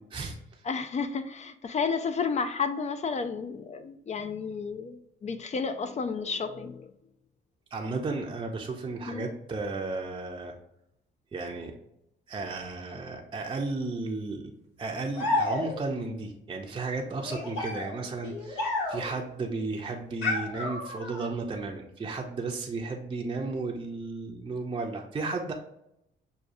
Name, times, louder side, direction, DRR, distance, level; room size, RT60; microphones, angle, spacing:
voice 1, 0.1-0.6 7.7-10.5 11.3-11.8 12.3-14.5 14.8-25.5, right 3 dB, 25° right, 0 dB, 0.5 m, -34 dB
voice 2, 0.6-6.9 9.1-9.3, left 5 dB, 35° left, 10 dB, 0.4 m, -32 dB
sound 1, 15.1-16.0 17.2-19.2 20.2-21.3, left 2 dB, 80° left, 1.4 m, -31 dB
6.1 x 2.2 x 2.6 m, 0.81 s
cardioid pair, 90°, 20 cm